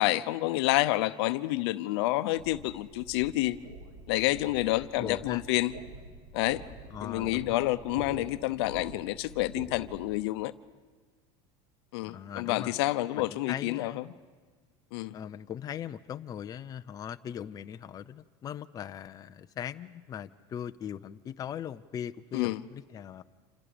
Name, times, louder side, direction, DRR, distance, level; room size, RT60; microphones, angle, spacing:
voice 1, 0.0-3.6 4.1-5.7 6.3-6.6 7.0-10.5 11.9-14.1 14.9-15.1 22.3-22.6, left 17 dB, 80° left, 13 dB, 0.9 m, -29 dB
sound 1, 2.4-10.1, right 2 dB, 80° right, 5.7 m, -46 dB
voice 2, 5.0-5.4 6.9-7.6 12.0-12.7 13.2-14.0 15.1-23.2, left 9 dB, 30° left, 9 dB, 0.6 m, -40 dB
29.0 x 27.5 x 5.2 m, 1.5 s
supercardioid pair, 135°, 13 cm